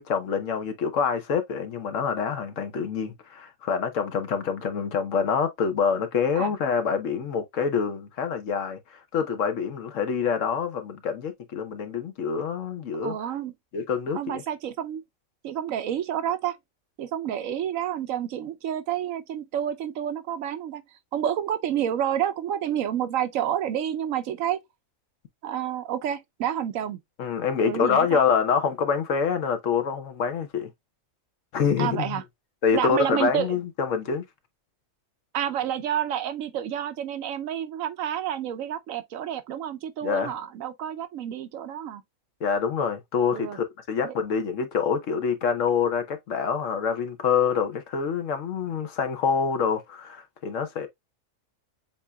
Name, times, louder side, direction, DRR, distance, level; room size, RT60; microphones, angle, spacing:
voice 1, 0.0-13.2 13.7-14.4 27.2-30.7 31.5-32.2 32.6-34.2 40.0-40.3 42.4-50.9, left 6 dB, 70° left, 1.2 m, -26 dB
voice 2, 13.0-13.5 14.1-15.0 15.4-16.6 17.0-20.8 21.1-24.6 25.4-27.0 27.6-28.2 31.8-32.2 32.7-33.6 35.3-42.0 43.3-43.6 44.0-44.1, right 10 dB, 75° right, 1.0 m, -29 dB
7.5 x 2.7 x 2.2 m
omnidirectional pair, 1.4 m